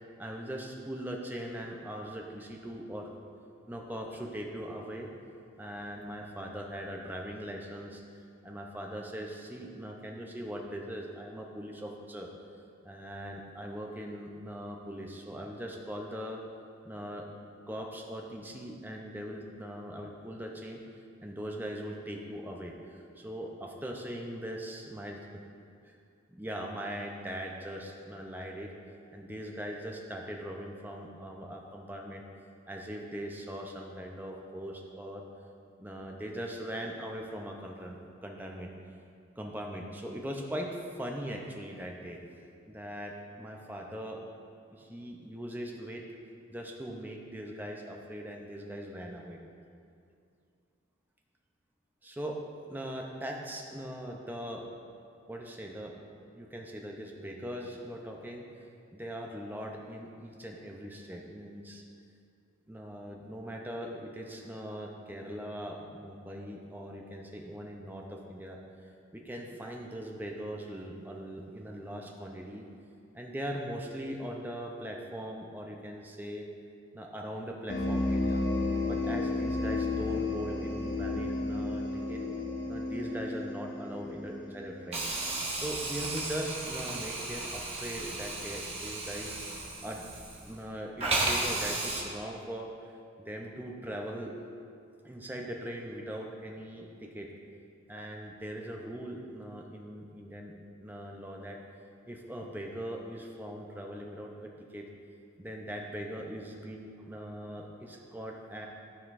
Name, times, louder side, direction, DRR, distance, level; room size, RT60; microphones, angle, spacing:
voice 1, 0.2-3.1 3.7-5.1 5.6-8.0 8.4-12.3 12.8-16.4 16.8-17.3 17.7-20.8 21.2-25.2 25.9-26.0 26.3-28.7 29.1-32.2 32.7-35.2 35.8-38.7 39.4-40.7 41.0-42.2 42.7-44.2 44.7-46.0 46.5-49.4 52.0-52.4 52.7-54.6 55.3-55.9 56.3-58.4 58.9-61.8 62.7-68.6 69.1-72.6 73.1-76.4 76.9-78.4 78.9-82.2 82.7-85.0 85.5-89.4 89.8-90.0 90.4-92.9 93.2-94.3 95.0-97.3 97.9-100.5 100.8-101.6 102.1-104.9 105.4-108.7, equal, 10° right, 0 dB, 0.6 m, -40 dB
sound 1, 77.7-85.1, left 2 dB, 60° left, 0.9 m, -32 dB
Hiss, 84.9-90.6 91.0-92.0, right 2 dB, 30° right, 1.0 m, -34 dB
13.0 x 5.0 x 2.6 m, 2.4 s
head